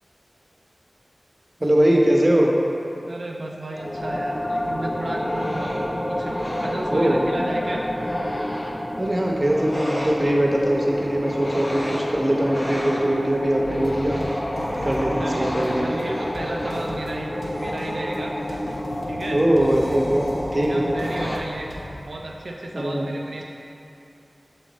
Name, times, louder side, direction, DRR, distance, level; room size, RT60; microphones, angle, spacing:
voice 1, 1.6-2.5 6.9-7.2 9.0-14.2 14.8-15.9 19.3-20.9 22.7-23.0, right 1 dB, 30° right, -1 dB, 0.9 m, -21 dB
voice 2, 3.0-5.8 6.1-7.9 15.2-17.3 17.6-18.3 19.1-19.4 20.5-23.4, right 2 dB, 80° right, 0 dB, 0.4 m, -33 dB
sound 1, 3.7-21.4, equal, 25° left, 0.6 m, -29 dB
sound 2, 13.6-22.0, equal, 60° left, 1.2 m, -39 dB
sound 3, 14.1-17.0 17.5-19.1 19.7-22.0, equal, 85° left, 1.2 m, -38 dB
7.1 x 3.6 x 4.1 m, 2.7 s
wide cardioid pair, 45°, 0 cm